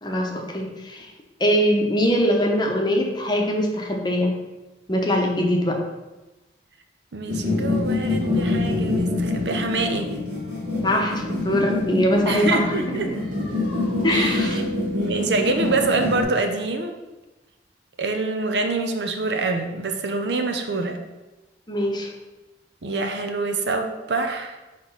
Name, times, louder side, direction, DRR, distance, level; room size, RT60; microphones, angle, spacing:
voice 1, 0.0-1.1 1.4-4.3 4.9-5.8 10.8-12.6 12.9-13.1 14.0-14.6 21.7-22.1, equal, 25° left, 1 dB, 0.9 m, -22 dB
voice 2, 7.1-10.1 12.3-13.1 14.1-14.6 14.9-17.0 18.0-21.0 22.8-24.6, right 3 dB, 75° right, 5 dB, 0.7 m, -25 dB
sound 1, 7.3-16.2, left 2 dB, 50° right, 2.2 m, -25 dB
5.9 x 3.2 x 5.5 m, 1.1 s
head